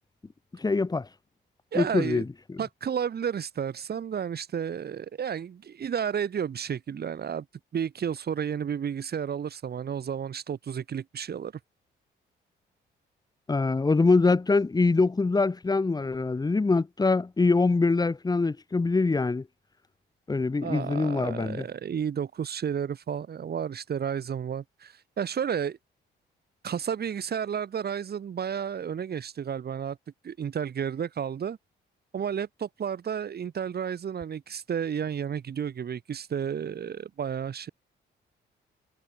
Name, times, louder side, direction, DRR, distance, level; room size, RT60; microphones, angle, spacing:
voice 1, 0.5-1.1 1.7-2.6 13.5-19.4 20.3-21.6, left 3 dB, 20° left, 1.2 m, -24 dB
voice 2, 1.7-2.2 2.6-7.4 7.7-11.5 20.6-25.8 26.6-30.0 30.2-31.6 32.1-37.7, right 8 dB, 55° right, 4.9 m, -32 dB
cardioid pair, 90°, 20 cm